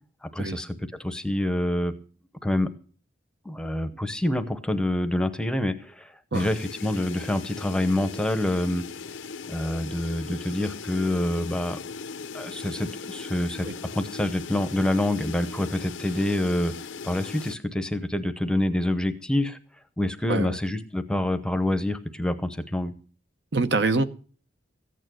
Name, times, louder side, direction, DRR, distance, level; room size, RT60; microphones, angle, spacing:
voice 1, 0.2-0.7 1.0-1.9 2.4-2.7 3.4-8.8 9.5-11.8 12.3-13.7 13.9-16.7 17.0-19.6 20.0-22.9, left 1 dB, 5° left, 0.7 m, -26 dB
sound 1, 6.3-17.6, left 5 dB, 75° left, 0.7 m, -39 dB
voice 2, 20.3-20.6 23.5-24.0, right 3 dB, 60° right, 0.8 m, -25 dB
15.0 x 9.1 x 6.2 m
head